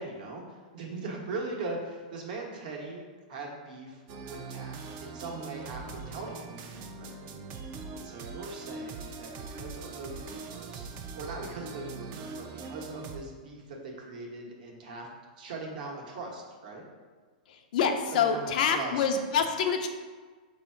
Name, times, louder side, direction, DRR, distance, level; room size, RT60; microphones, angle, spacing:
voice 1, 0.0-3.0 3.3-7.4 7.9-10.9 11.2-15.1 15.4-16.8 18.1-19.0, right 3 dB, 70° right, -1 dB, 1.1 m, -40 dB
sound 1, 4.1-13.2, right 4 dB, 40° right, 0.4 m, -42 dB
voice 2, 17.7-19.9, left 6 dB, 65° left, 5 dB, 0.5 m, -26 dB
4.3 x 2.7 x 4.4 m, 1.4 s
hypercardioid pair, 135°, 5 cm